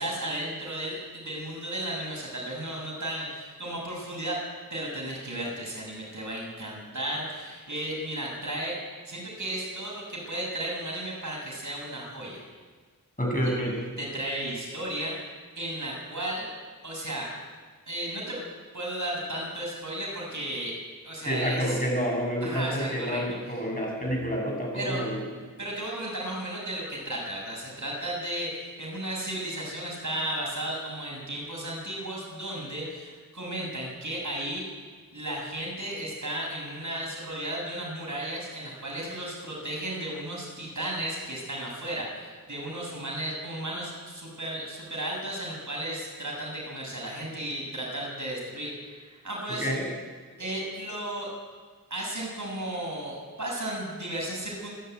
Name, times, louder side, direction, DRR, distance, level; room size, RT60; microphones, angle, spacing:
voice 1, 0.0-4.4 4.7-8.8 9.1-12.4 14.0-15.3 15.6-16.5 16.8-17.3 17.9-18.4 18.7-20.8 21.0-21.8 22.4-23.2 24.7-25.0 25.6-34.6 35.1-49.7 50.4-51.3 51.9-54.7, right 1 dB, 55° right, -3 dB, 7.3 m, -34 dB
voice 2, 13.2-13.7 21.3-25.2 49.5-49.9, equal, 25° left, -2 dB, 7.9 m, -28 dB
25.0 x 11.5 x 9.6 m, 1.5 s
wide cardioid pair, 50°, 36 cm